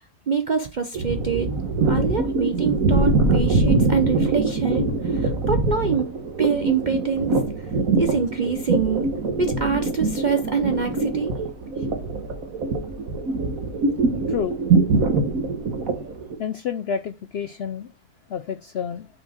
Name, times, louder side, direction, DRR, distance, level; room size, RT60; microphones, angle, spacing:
voice 1, 0.3-1.5 1.9-6.1 6.4-7.3 8.0-9.1 9.4-11.3, right 6 dB, 50° right, 0.5 m, -25 dB
sound 1, 0.9-16.4, right 3 dB, 65° right, 1.7 m, -23 dB
voice 2, 16.4-17.9 18.3-19.1, left 7 dB, 65° left, 0.6 m, -29 dB
6.6 x 4.4 x 4.9 m
omnidirectional pair, 1.6 m